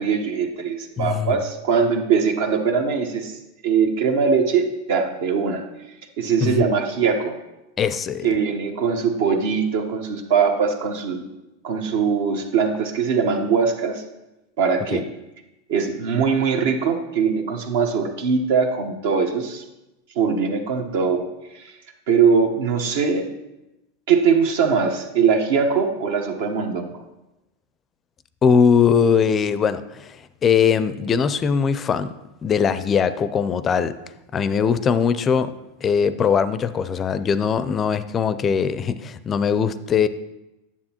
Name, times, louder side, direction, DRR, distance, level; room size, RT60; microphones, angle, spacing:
voice 1, 0.0-3.3 3.6-5.6 6.2-7.4 8.2-11.2 11.6-14.0 14.6-15.1 15.7-19.6 20.1-21.2 21.5-21.7 22.1-23.3 24.1-26.9, right 6 dB, 70° right, 5 dB, 1.0 m, -21 dB
voice 2, 1.0-1.4 6.4-6.7 7.8-8.3 14.9-15.0 28.4-32.1 32.4-33.9 34.3-35.5 35.8-40.1, left 6 dB, 30° left, 15 dB, 0.4 m, -20 dB
9.8 x 7.2 x 2.9 m, 0.96 s
hypercardioid pair, 105°, 0 cm